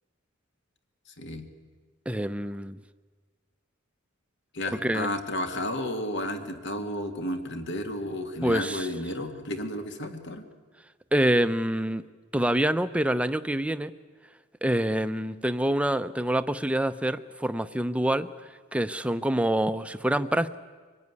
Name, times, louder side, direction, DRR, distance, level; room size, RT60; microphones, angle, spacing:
voice 1, 1.2-1.5 4.5-10.4, left 1 dB, 60° left, 6 dB, 2.1 m, -32 dB
voice 2, 2.1-2.8 4.8-5.1 8.4-8.9 11.1-12.0 12.3-13.9 14.6-20.5, right 1 dB, 5° right, 11 dB, 0.6 m, -26 dB
24.5 x 19.0 x 9.7 m, 1.4 s
head